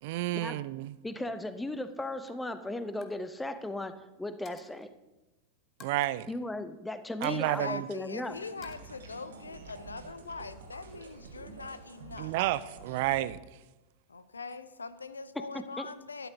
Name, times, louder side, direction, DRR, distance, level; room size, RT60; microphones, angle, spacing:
voice 1, 0.0-1.0 5.8-6.3 7.2-7.9 12.2-13.4, right 16 dB, 50° right, 18 dB, 0.4 m, -30 dB
voice 2, 1.0-4.9 6.3-8.4 15.5-15.9, left 1 dB, 5° left, 12 dB, 0.7 m, -36 dB
Coin (dropping), 1.9-2.0 2.3-2.5 2.8-3.2 3.5-3.7 4.5-4.9 5.8-6.1 7.2-8.1 8.6-8.8, left 7 dB, 30° left, 1.1 m, -54 dB
voice 3, 7.2-12.3 14.1-16.3, left 4 dB, 75° left, 14 dB, 0.6 m, -42 dB
sound 1, 8.3-13.3, right 4 dB, 65° right, 1.6 m, -48 dB
12.5 x 10.0 x 4.0 m, 1.1 s
figure-of-eight pair, 90°, 0 cm